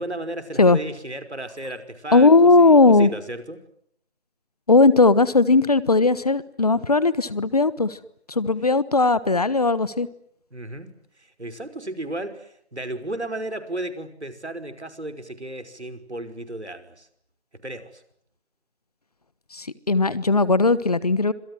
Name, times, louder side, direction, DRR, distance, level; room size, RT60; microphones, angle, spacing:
voice 1, 0.0-3.6 10.5-10.9 11.2-17.1 17.6-18.0, right 1 dB, 90° right, 9 dB, 5.5 m, -34 dB
voice 2, 2.1-3.1 4.7-8.0 8.3-10.1 19.5-21.3, left 3 dB, 35° left, 18 dB, 1.2 m, -17 dB
28.5 x 26.5 x 7.8 m, 0.71 s
figure-of-eight pair, 165°, 33 cm